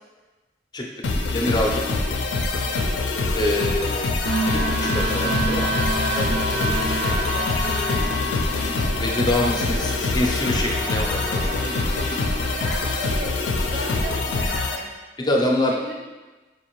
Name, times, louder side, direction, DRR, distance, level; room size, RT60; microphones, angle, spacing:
sound 1, 1.0-14.8, left 3 dB, 80° left, 0.4 m, -25 dB
voice 1, 1.3-1.8 3.3-4.1 4.5-5.7 6.2-6.6 9.0-11.5 15.2-15.7, left 1 dB, 25° left, 0 dB, 0.4 m, -25 dB
voice 2, 2.6-3.0 6.5-8.7 9.5-9.8 12.5-14.9 15.2-15.9, right 1 dB, 60° right, -2 dB, 0.7 m, -36 dB
sound 2, 4.2-13.0, right 1 dB, 90° right, 1.2 m, -28 dB
4.6 x 2.5 x 3.0 m, 1.2 s
head